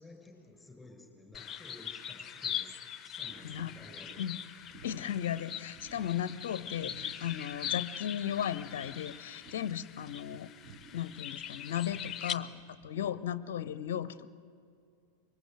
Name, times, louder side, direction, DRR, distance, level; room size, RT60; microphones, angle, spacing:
voice 1, 0.0-4.2 7.0-7.1 7.7-7.8 12.4-12.6, left 2 dB, 5° left, 3 dB, 6.2 m, -54 dB
sound 1, 1.3-12.3, left 9 dB, 25° left, 0.9 m, -41 dB
sound 2, 3.3-13.2, right 4 dB, 40° right, 1.4 m, -56 dB
voice 2, 3.4-3.7 4.2-4.4 4.8-10.5 10.9-12.5 12.8-14.3, left 10 dB, 55° left, 17 dB, 0.6 m, -36 dB
24.5 x 22.0 x 7.9 m, 2.4 s
figure-of-eight pair, 90°, 0 cm